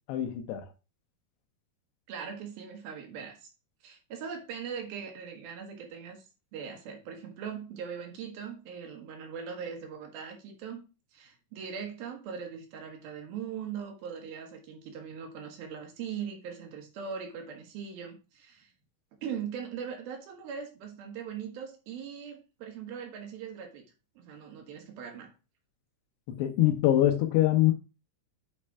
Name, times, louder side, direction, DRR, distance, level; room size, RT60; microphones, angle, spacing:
voice 1, 0.1-0.7 26.3-27.7, left 13 dB, 90° left, 3.0 m, -24 dB
voice 2, 2.1-3.5 3.8-6.3 6.5-10.8 11.1-18.7 19.2-23.8 24.2-25.3, right 7 dB, 70° right, 3.1 m, -40 dB
8.8 x 3.3 x 4.7 m
omnidirectional pair, 4.6 m